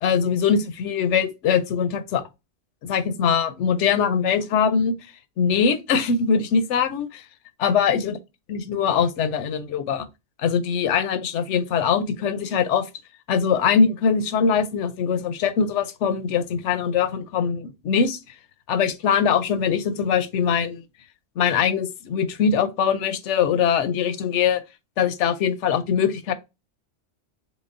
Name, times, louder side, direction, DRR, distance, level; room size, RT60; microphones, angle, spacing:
voice 1, 0.0-2.2 2.8-4.9 5.4-7.2 7.6-8.2 8.5-10.1 10.4-12.9 13.3-18.2 18.7-20.8 21.4-24.6 25.0-26.3, left 6 dB, 80° left, 0.9 m, -22 dB
3.9 x 3.3 x 2.5 m
omnidirectional pair, 1.2 m